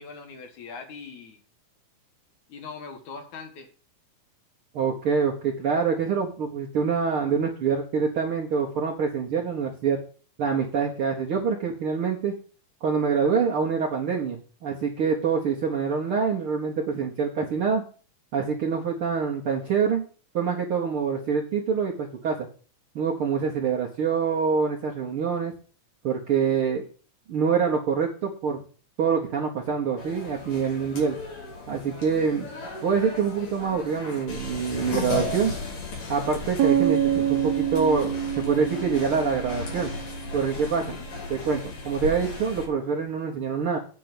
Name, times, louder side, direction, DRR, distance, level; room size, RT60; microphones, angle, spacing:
voice 1, 0.0-1.4 2.5-3.7 40.7-41.1, left 5 dB, 65° left, 5 dB, 2.8 m, -41 dB
voice 2, 4.7-10.0 10.4-12.3 12.8-17.8 18.3-20.0 20.3-22.5 22.9-25.5 26.0-26.8 27.3-28.6 29.0-31.2 31.7-32.5 32.8-35.5 36.1-39.9 40.3-41.0 41.3-43.8, right 6 dB, 60° right, 0 dB, 1.5 m, -25 dB
sound 1, 30.0-42.7, left 3 dB, 85° left, 4.9 m, -35 dB
sound 2, 36.6-40.5, right 11 dB, 75° right, 1.7 m, -26 dB
8.5 x 5.3 x 7.7 m, 0.39 s
omnidirectional pair, 3.8 m